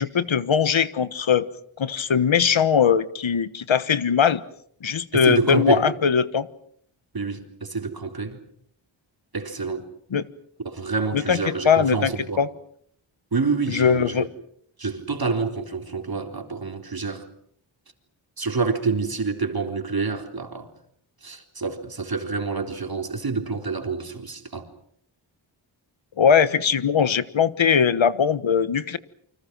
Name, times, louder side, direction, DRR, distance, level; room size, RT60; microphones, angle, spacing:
voice 1, 0.0-1.5 1.8-4.4 4.8-6.5 10.1-10.2 11.1-11.4 11.6-12.1 12.4-12.5 13.7-14.3 26.2-29.0, left 7 dB, 70° left, 1.4 m, -20 dB
voice 2, 5.1-5.9 7.1-8.4 9.3-9.9 10.6-12.4 13.3-14.3 14.8-17.3 18.4-20.7 21.2-24.7, right 4 dB, 50° right, 3.9 m, -27 dB
29.0 x 25.5 x 6.2 m
wide cardioid pair, 75°, 48 cm